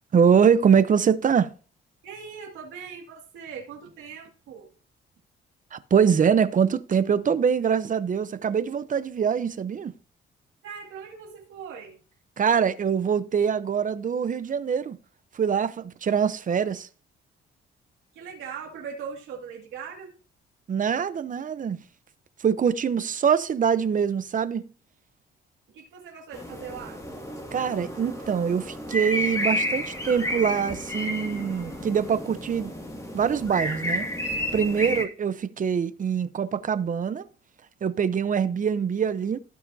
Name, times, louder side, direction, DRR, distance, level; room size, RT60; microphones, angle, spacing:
voice 1, 0.1-1.5 5.7-9.9 12.4-15.0 15.3-16.9 20.7-21.8 22.4-24.7 27.5-32.7 33.1-34.1 34.5-37.3 37.8-39.4, right 7 dB, 40° right, 0.8 m, -24 dB
voice 2, 2.0-4.7 10.6-12.0 18.1-20.1 25.7-27.0 34.8-35.0, right 6 dB, 85° right, 2.2 m, -40 dB
sound 1, 26.3-35.0, equal, 15° left, 2.2 m, -31 dB
16.0 x 5.7 x 2.8 m
cardioid pair, 90°, 20 cm